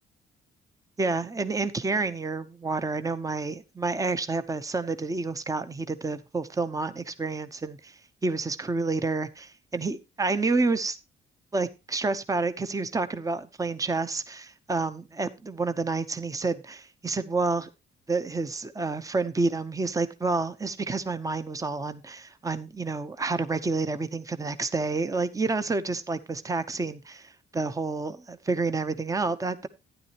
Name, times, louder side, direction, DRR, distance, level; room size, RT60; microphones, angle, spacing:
voice 1, 1.0-11.0 11.5-17.7 18.1-29.7, right 3 dB, 15° right, 11 dB, 0.8 m, -29 dB
11.5 x 9.9 x 3.0 m, 0.25 s
cardioid pair, 90°, 20 cm